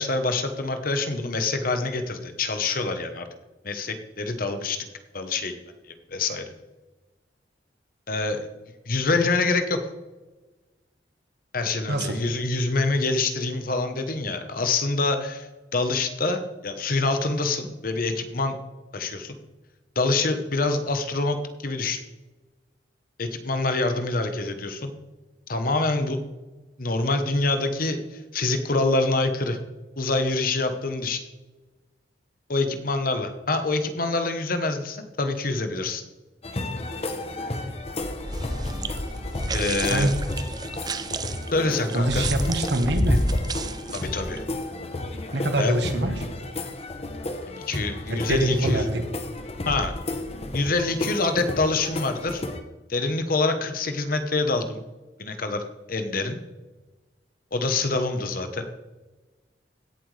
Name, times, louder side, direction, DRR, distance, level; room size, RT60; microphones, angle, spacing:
voice 1, 0.0-3.3 3.6-4.9 5.1-5.5 5.9-6.4 8.1-8.4 8.9-9.8 11.5-18.6 18.9-19.4 19.9-21.4 21.6-22.0 23.2-24.9 25.5-26.2 26.8-28.0 28.3-29.6 30.0-31.2 32.5-36.0 39.5-40.1 41.5-42.3 43.9-44.4 45.6-45.8 47.5-48.8 49.7-49.9 50.5-52.4 52.9-54.8 55.2-56.4 57.5-58.7, left 3 dB, 55° left, 7 dB, 1.1 m, -26 dB
voice 2, 11.9-12.2 39.9-40.1 41.9-43.2 45.3-46.3 48.1-49.0, right 1 dB, 75° right, 6 dB, 1.3 m, -24 dB
sound 1, 36.4-52.6, left 1 dB, 35° left, 0.9 m, -31 dB
sound 2, 38.2-44.4, right 6 dB, 25° right, 0.4 m, -36 dB
16.5 x 7.7 x 3.3 m, 1.2 s
head